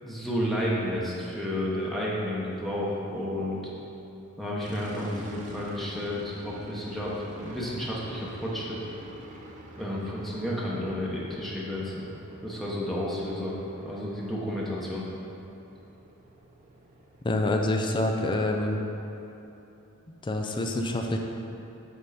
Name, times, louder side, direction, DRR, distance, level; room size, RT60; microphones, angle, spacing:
voice 1, 0.0-3.6 4.4-8.8 9.8-12.0 12.4-15.1, left 1 dB, ahead, -6 dB, 0.9 m, -31 dB
sound 1, 4.6-19.4, right 1 dB, 35° right, 0.8 m, -47 dB
voice 2, 17.2-18.8 20.2-21.2, left 1 dB, 20° left, 2 dB, 0.5 m, -26 dB
8.0 x 5.3 x 4.9 m, 2.9 s
head